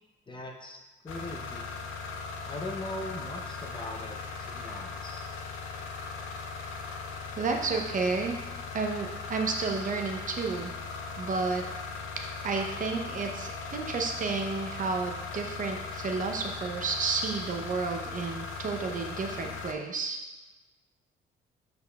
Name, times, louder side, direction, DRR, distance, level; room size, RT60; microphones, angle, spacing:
voice 1, 0.3-0.8 1.0-1.7 2.5-5.3, left 1 dB, 25° left, 1 dB, 0.6 m, -40 dB
sound 1, 1.1-19.7, left 4 dB, 90° left, 0.5 m, -39 dB
voice 2, 7.4-8.4 8.7-10.7 11.2-11.6 12.4-20.2, right 4 dB, 40° right, 3 dB, 0.6 m, -31 dB
5.2 x 4.5 x 2.2 m, 1.1 s
cardioid pair, 90°, 20 cm